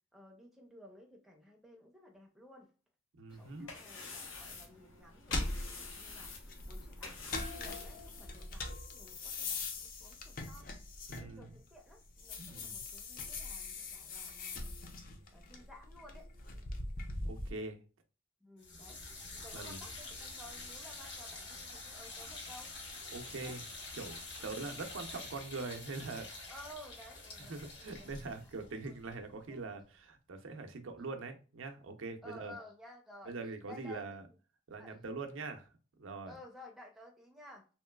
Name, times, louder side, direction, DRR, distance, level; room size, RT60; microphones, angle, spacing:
voice 1, 0.1-2.7 3.3-6.3 6.7-10.7 11.2-14.7 15.3-16.3 18.4-19.0 19.3-22.7 23.4-23.6 24.4-24.6 26.5-28.1 28.7-29.0 29.4-29.6 32.2-33.3 33.7-34.3 34.8-35.0 35.4-35.5 36.3-37.7, left 1 dB, ahead, 0.5 m, -55 dB
voice 2, 3.2-3.7 11.1-11.5 12.4-12.8 17.2-17.8 19.5-19.8 23.1-23.6 23.9-26.5 27.5-32.5 33.3-34.2 34.7-35.7 36.0-36.3, right 3 dB, 80° right, 0.5 m, -43 dB
sound 1, 3.3-8.4, left 4 dB, 85° left, 0.8 m, -48 dB
sound 2, 5.3-11.7 12.1-17.5, left 3 dB, 45° left, 0.5 m, -41 dB
sound 3, 18.6-29.7, left 3 dB, 65° left, 1.1 m, -47 dB
3.0 x 2.9 x 2.2 m
head